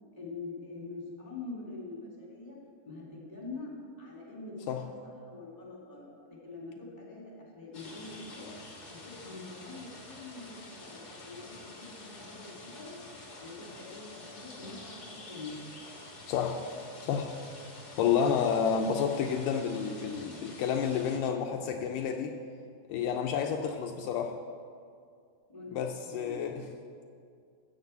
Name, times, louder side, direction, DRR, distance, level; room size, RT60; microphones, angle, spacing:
voice 1, 0.1-2.6 2.8-3.7 4.0-8.5 8.9-12.9 13.4-15.6 25.5-25.8 26.1-26.5, left 3 dB, 10° left, -4 dB, 3.3 m, -45 dB
sound 1, 7.7-21.2, left 2 dB, 35° left, 1.9 m, -48 dB
voice 2, 16.3-16.7 17.0-17.3 18.0-22.4 22.9-24.4 25.7-26.6, left 7 dB, 80° left, 3 dB, 2.2 m, -30 dB
14.0 x 6.7 x 8.1 m, 2.3 s
omnidirectional pair, 3.9 m